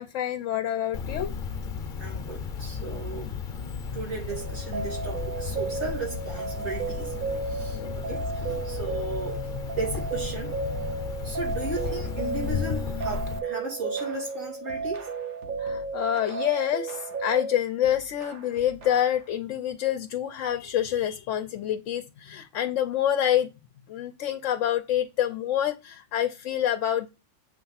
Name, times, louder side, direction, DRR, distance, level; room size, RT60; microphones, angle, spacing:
voice 1, 0.0-1.3 7.7-7.9 15.6-23.5 23.9-27.1, left 11 dB, 75° left, 0.9 m, -27 dB
Cricket, 0.9-13.4, left 6 dB, 45° left, 1.0 m, -34 dB
voice 2, 2.0-3.3 3.9-7.1 7.5-9.5 9.8-10.5 11.2-15.1, right 3 dB, 90° right, 3.4 m, -36 dB
sound 1, 4.3-17.5, right 4 dB, 45° right, 0.9 m, -33 dB
sound 2, 13.0-13.5 14.0-17.4 17.8-19.3, right 4 dB, 65° right, 1.4 m, -48 dB
7.6 x 3.4 x 5.6 m
omnidirectional pair, 1.3 m